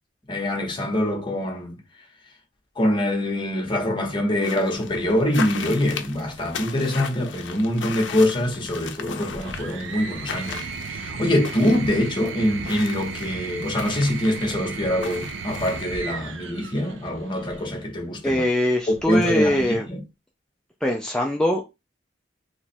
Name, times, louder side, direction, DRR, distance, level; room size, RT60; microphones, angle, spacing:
voice 1, 0.3-1.8 2.8-18.4 18.9-20.0, left 1 dB, 25° left, 0.9 m, -24 dB
sound 1, 4.4-16.0, left 6 dB, 70° left, 0.5 m, -37 dB
sound 2, 9.3-17.7 18.9-19.6, right 5 dB, 75° right, 0.6 m, -35 dB
voice 2, 18.2-19.9 20.8-21.6, left 1 dB, 5° left, 0.4 m, -22 dB
3.0 x 2.3 x 4.3 m
head